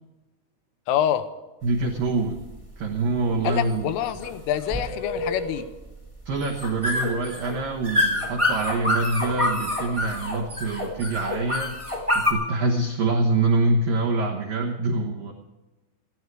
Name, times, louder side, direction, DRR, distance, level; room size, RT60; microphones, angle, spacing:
voice 1, 0.9-1.3 3.4-5.7, left 11 dB, 80° left, 11 dB, 3.4 m, -26 dB
sound 1, 1.6-12.3, left 1 dB, 25° right, 0.6 m, -27 dB
voice 2, 1.6-2.5 2.8-4.0 6.3-11.8 12.1-15.3, right 3 dB, 70° right, 0 dB, 2.1 m, -25 dB
19.5 x 14.5 x 4.8 m, 1.1 s
omnidirectional pair, 5.9 m